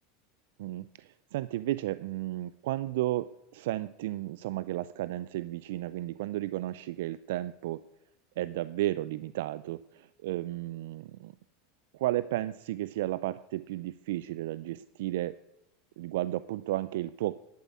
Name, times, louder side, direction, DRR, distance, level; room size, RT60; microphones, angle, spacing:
voice 1, 0.6-7.8 8.4-11.3 11.9-15.4 16.0-17.3, right 15 dB, 75° right, 16 dB, 0.4 m, -33 dB
11.5 x 8.1 x 9.4 m, 0.85 s
hypercardioid pair, 105°, 0 cm